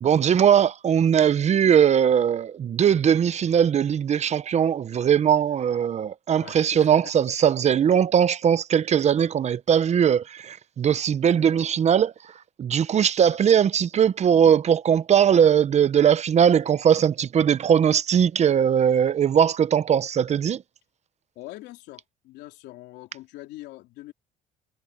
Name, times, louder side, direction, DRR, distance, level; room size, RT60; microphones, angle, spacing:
voice 1, 0.0-12.1 12.6-20.6, right 8 dB, 40° right, 0.8 m, -20 dB
voice 2, 6.3-7.3 11.3-11.7 21.4-24.1, left 17 dB, 90° left, 3.7 m, -44 dB
cardioid pair, 110°, 17 cm